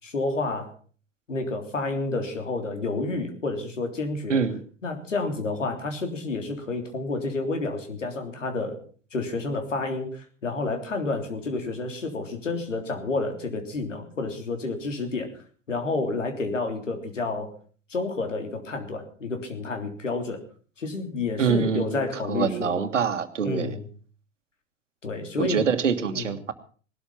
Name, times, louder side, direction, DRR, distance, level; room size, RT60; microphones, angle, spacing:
voice 1, 0.0-0.7 1.3-4.4 4.8-8.8 9.1-15.3 15.7-17.5 17.9-20.4 20.8-22.8 23.4-23.9 25.0-25.6 26.1-26.3, left 3 dB, 80° left, 5 dB, 3.5 m, -30 dB
voice 2, 21.4-22.0 22.3-23.7 25.4-26.5, right 6 dB, 80° right, 10 dB, 1.7 m, -25 dB
19.0 x 13.0 x 5.6 m, 0.42 s
figure-of-eight pair, 80°, 37 cm